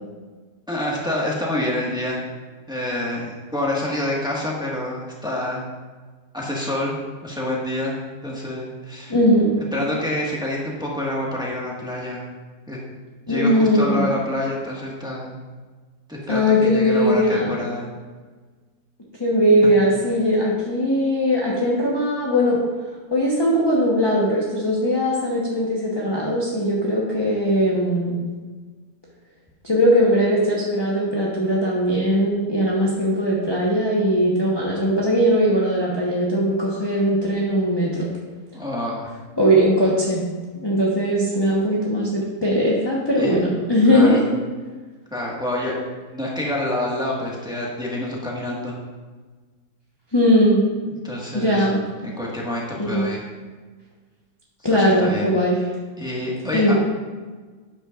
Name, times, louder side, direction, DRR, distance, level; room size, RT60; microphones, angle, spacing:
voice 1, 0.7-2.3 2.7-5.7 6.3-7.0 7.2-8.0 8.2-9.1 9.7-12.3 12.7-12.8 13.3-15.4 16.1-17.9 38.5-39.1 43.1-43.3 43.9-44.2 45.1-45.8 46.1-48.8 51.0-51.7 52.0-53.2 54.7-55.2 56.0-56.7, left 1 dB, 5° right, -4 dB, 1.6 m, -27 dB
voice 2, 9.1-9.5 13.3-14.1 16.3-17.6 19.2-22.6 23.1-28.2 29.6-38.1 39.4-40.2 40.6-44.3 50.1-50.7 51.3-51.8 52.8-53.1 54.6-55.6 56.5-56.7, equal, 20° left, -5 dB, 1.1 m, -19 dB
11.5 x 8.7 x 2.5 m, 1.4 s
omnidirectional pair, 1.6 m